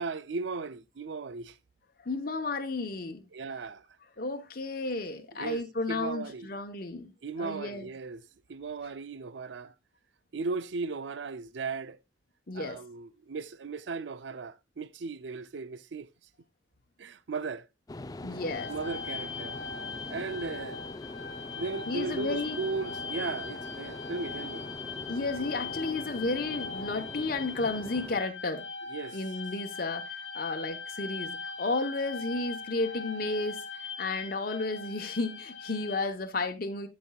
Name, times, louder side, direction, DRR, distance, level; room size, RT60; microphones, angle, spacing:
voice 1, 0.0-1.6 3.3-3.9 5.3-6.5 7.2-9.7 10.3-12.0 12.5-16.1 17.0-17.7 18.7-19.6 20.1-20.8 21.6-24.7 28.9-29.2, right 4 dB, 70° right, 0.5 m, -36 dB
voice 2, 2.0-3.2 4.2-7.1 7.4-7.9 12.5-12.8 18.2-18.7 21.9-22.6 25.1-28.6 29.1-36.9, left 3 dB, 50° left, 0.9 m, -33 dB
sound 1, 17.9-28.2, left 2 dB, 20° left, 0.3 m, -43 dB
sound 2, 18.5-36.0, left 4 dB, 75° left, 1.2 m, -40 dB
14.0 x 5.3 x 2.3 m
head